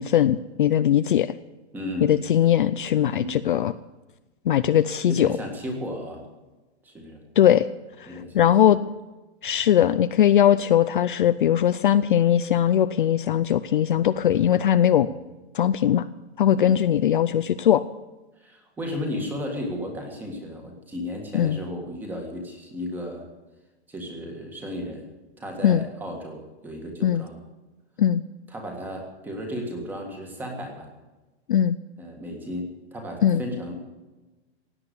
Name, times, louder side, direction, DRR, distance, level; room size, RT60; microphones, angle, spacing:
voice 1, 0.0-1.3 2.0-3.7 4.5-5.3 7.4-7.7 8.0-8.8 9.4-15.1 15.5-16.0 16.4-17.8 21.3-21.6 25.6-25.8 27.0-27.2 28.0-28.2 31.5-31.8 33.2-33.4, left 10 dB, 50° left, 12 dB, 0.5 m, -20 dB
voice 2, 1.7-2.2 3.1-3.4 5.0-6.2 6.8-7.2 8.1-8.5 14.9-15.2 16.5-16.8 18.4-23.3 23.9-25.1 25.4-27.4 28.5-30.9 32.0-33.7, equal, 5° right, 3 dB, 1.7 m, -34 dB
16.5 x 9.0 x 8.1 m, 1.1 s
hypercardioid pair, 175°, 34 cm